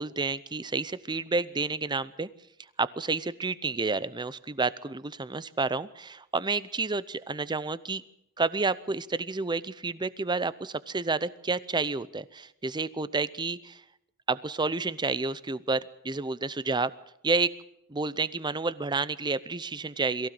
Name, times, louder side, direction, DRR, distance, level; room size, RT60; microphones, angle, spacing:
voice 1, 0.0-2.3 2.8-8.0 8.4-13.8 14.3-16.9 17.2-17.5 17.9-20.3, right 3 dB, 20° right, 16 dB, 0.7 m, -30 dB
22.5 x 15.5 x 7.7 m, 0.78 s
head